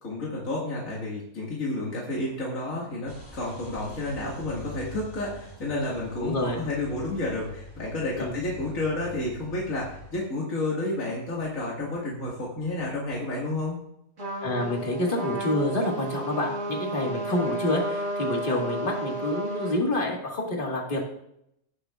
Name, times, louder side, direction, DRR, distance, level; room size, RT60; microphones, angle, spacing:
voice 1, 0.0-13.8, left 2 dB, 65° left, -5 dB, 2.4 m, -31 dB
sound 1, 3.0-10.2, left 1 dB, 15° left, 3.1 m, -45 dB
voice 2, 6.2-6.6 8.2-8.3 14.4-21.0, left 1 dB, 35° left, -1 dB, 2.0 m, -28 dB
Trumpet, 14.2-19.8, right 1 dB, 55° right, 2.1 m, -32 dB
17.5 x 6.6 x 2.4 m, 0.76 s
omnidirectional pair, 1.5 m